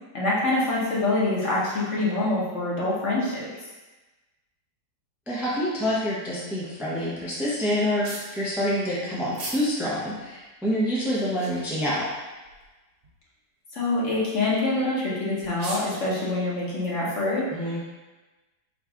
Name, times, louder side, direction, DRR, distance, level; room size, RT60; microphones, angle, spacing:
voice 1, 0.1-3.5 13.7-17.5, left 2 dB, 50° left, -6 dB, 1.2 m, -25 dB
voice 2, 5.3-12.1 17.5-17.8, equal, ahead, -7 dB, 0.4 m, -27 dB
sound 1, 8.0-8.3 9.3-9.6 10.2-10.3 11.1-11.7 12.4-12.7 13.0-13.1 13.8-14.0 15.0-15.1 15.4-16.0, right 3 dB, 75° right, 1.4 m, -37 dB
4.0 x 2.4 x 4.6 m, 1.2 s
omnidirectional pair, 1.7 m